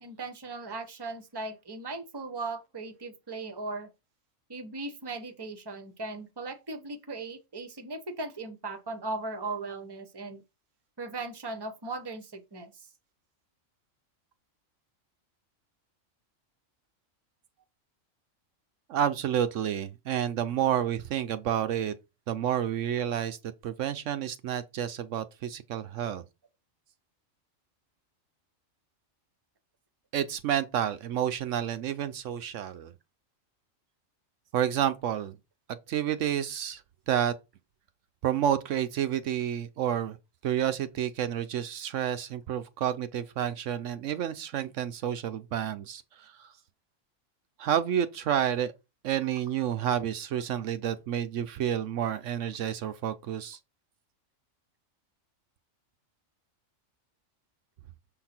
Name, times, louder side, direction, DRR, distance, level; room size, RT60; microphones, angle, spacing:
voice 1, 0.0-3.9 4.5-10.4 11.0-12.9, right 3 dB, 20° right, 0.9 m, -38 dB
voice 2, 18.9-21.9 22.3-23.4 23.6-26.2 30.1-32.9 34.5-35.4 35.9-36.8 37.1-37.3 38.2-40.2 40.4-46.5 47.6-48.7 49.0-53.6, right 10 dB, 75° right, 0.9 m, -30 dB
7.1 x 3.9 x 4.3 m
omnidirectional pair, 1.3 m